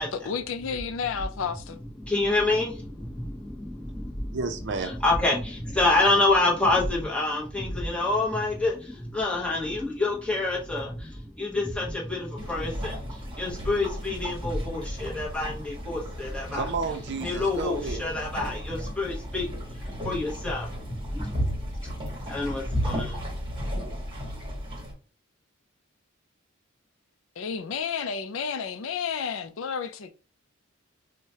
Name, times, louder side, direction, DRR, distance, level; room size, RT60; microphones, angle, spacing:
voice 1, 0.1-1.8 27.4-30.1, left 6 dB, 75° left, 0.4 m, -31 dB
voice 2, 2.0-4.4 4.8-16.6 17.2-21.5 21.8-23.2, left 2 dB, 5° left, 0.9 m, -28 dB
voice 3, 4.3-4.9 16.5-18.1, right 4 dB, 55° right, 0.5 m, -31 dB
sound 1, 12.4-24.9, equal, 25° right, 1.2 m, -34 dB
4.6 x 2.1 x 2.8 m
head